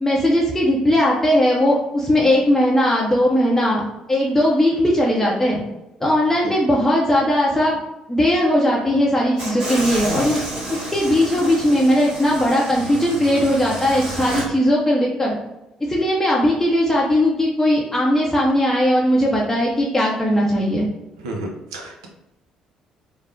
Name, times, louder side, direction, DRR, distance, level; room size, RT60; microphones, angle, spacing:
voice 1, 0.0-5.6 6.0-7.8 8.1-10.4 10.7-15.4 15.8-20.9, left 1 dB, 10° left, -4 dB, 0.6 m, -18 dB
sound 1, 9.4-14.4, right 2 dB, 45° right, 1.4 m, -30 dB
voice 2, 21.2-22.1, right 2 dB, 75° right, 0 dB, 0.4 m, -31 dB
3.2 x 2.0 x 2.6 m, 0.94 s
figure-of-eight pair, 50°, 3 cm